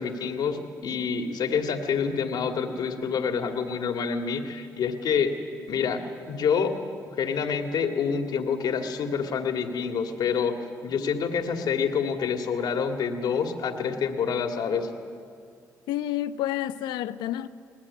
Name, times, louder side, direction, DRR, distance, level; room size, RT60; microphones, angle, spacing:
voice 1, 0.0-5.3 5.7-6.8 7.2-10.6 10.8-14.9, left 6 dB, 70° left, 2.1 m, -27 dB
voice 2, 15.9-17.5, left 13 dB, 85° left, 0.8 m, -29 dB
23.0 x 18.5 x 9.7 m
supercardioid pair, 60°, 7 cm